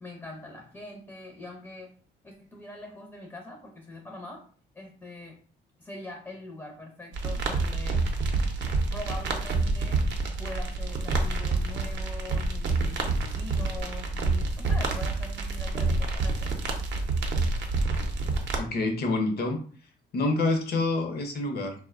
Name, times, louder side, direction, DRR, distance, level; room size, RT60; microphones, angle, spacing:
voice 1, 0.0-1.9 2.2-5.4 5.8-8.0 8.9-10.0 10.4-16.5, left 2 dB, 10° left, 1 dB, 0.5 m, -43 dB
sound 1, 7.1-18.6, right 3 dB, 65° right, 0.6 m, -28 dB
voice 2, 18.6-19.6 20.1-21.7, left 2 dB, 55° left, 4 dB, 0.6 m, -27 dB
2.5 x 2.1 x 2.4 m, 0.43 s
cardioid pair, 90°, 20 cm